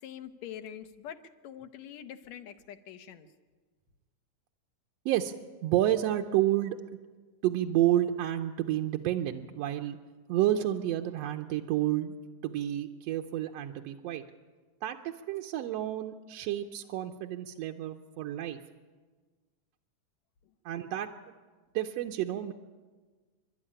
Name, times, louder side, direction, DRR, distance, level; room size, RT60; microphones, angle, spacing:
voice 1, 0.0-3.3, left 9 dB, 70° left, 9 dB, 2.2 m, -45 dB
voice 2, 5.6-6.8 7.4-10.0 10.3-12.2 12.4-14.2 14.8-18.6 20.7-21.1 21.7-22.5, right 13 dB, 70° right, 3 dB, 1.7 m, -30 dB
28.5 x 12.5 x 10.0 m, 1.4 s
omnidirectional pair, 3.4 m